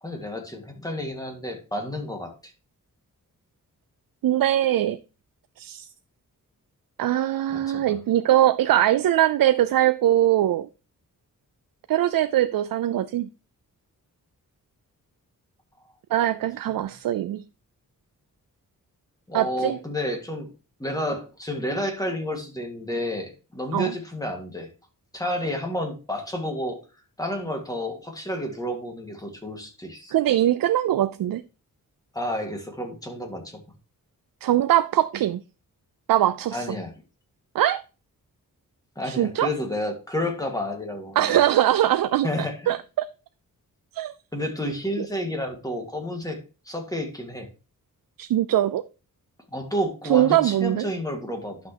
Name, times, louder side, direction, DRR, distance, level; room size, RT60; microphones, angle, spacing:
voice 1, 0.0-2.5 7.5-8.0 19.3-20.5 20.8-24.7 25.1-26.8 27.2-30.1 32.1-33.6 36.5-36.9 39.0-41.4 42.2-42.8 44.3-46.4 46.7-47.5 49.5-51.6, left 1 dB, 10° left, 1.8 m, -30 dB
voice 2, 4.2-5.0 5.6-5.9 7.0-10.7 11.9-13.3 16.1-17.4 19.3-19.8 23.7-23.9 30.1-31.4 34.4-35.4 36.1-36.7 37.5-37.8 39.0-39.5 41.2-43.1 43.9-44.1 48.2-48.8 50.1-50.9, right 12 dB, 85° right, 0.5 m, -22 dB
11.0 x 6.2 x 2.9 m
wide cardioid pair, 160°, 34 cm